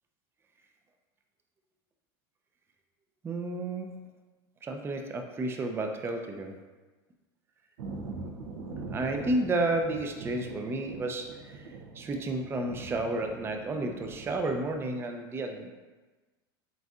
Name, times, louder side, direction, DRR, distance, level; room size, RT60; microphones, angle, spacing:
voice 1, 3.2-4.0 4.6-6.6 8.9-15.7, right 2 dB, 20° right, 4 dB, 0.4 m, -32 dB
Thunder, 7.8-14.8, right 3 dB, 85° right, 0.6 m, -42 dB
7.7 x 2.6 x 2.4 m, 1.3 s
supercardioid pair, 115°, 13 cm